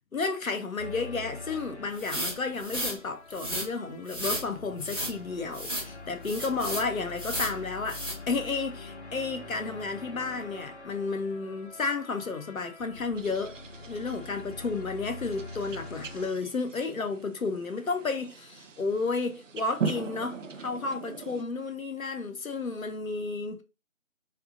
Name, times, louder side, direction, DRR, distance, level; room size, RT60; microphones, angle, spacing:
voice 1, 0.1-13.6 13.9-23.6, left 4 dB, 85° left, 0.8 m, -32 dB
sound 1, 0.8-16.3, left 3 dB, 55° left, 0.7 m, -45 dB
sound 2, 2.0-3.0 3.3-3.7 4.1-4.5 4.8-5.1 5.5-5.9 6.2-6.9 7.2-7.6 7.9-8.2, right 1 dB, 20° right, 1.0 m, -33 dB
sound 3, 13.2-21.4, right 5 dB, 65° right, 0.5 m, -40 dB
3.7 x 3.4 x 2.5 m
figure-of-eight pair, 165°, 41 cm